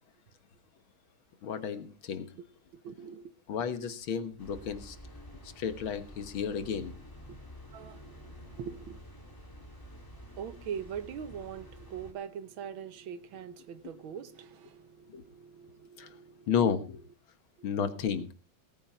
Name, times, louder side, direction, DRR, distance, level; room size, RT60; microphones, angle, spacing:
voice 1, 1.4-2.3 3.5-5.0 5.4-6.9 15.1-15.2 16.0-16.1 16.5-17.0 17.6-18.3, left 7 dB, 75° left, 2.1 m, -32 dB
voice 2, 2.7-3.3 7.7-9.0 10.3-16.5 17.6-17.7, right 8 dB, 80° right, 1.8 m, -42 dB
sound 1, 4.4-12.1, equal, 10° left, 2.1 m, -49 dB
18.0 x 9.1 x 4.4 m
omnidirectional pair, 2.2 m